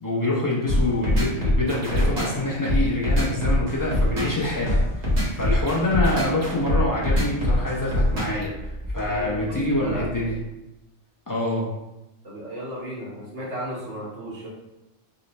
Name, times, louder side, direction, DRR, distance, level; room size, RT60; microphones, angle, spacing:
voice 1, 0.0-8.5 8.9-10.4 11.3-11.7, left 2 dB, 30° left, -5 dB, 0.4 m, -26 dB
sound 1, 0.7-8.4, left 1 dB, 70° right, 1.3 m, -22 dB
Car / Engine, 3.8-10.4, left 1 dB, 35° right, 0.8 m, -38 dB
voice 2, 9.1-10.1 12.2-14.5, equal, 85° right, -6 dB, 1.4 m, -34 dB
3.1 x 2.1 x 4.0 m, 0.93 s
omnidirectional pair, 1.2 m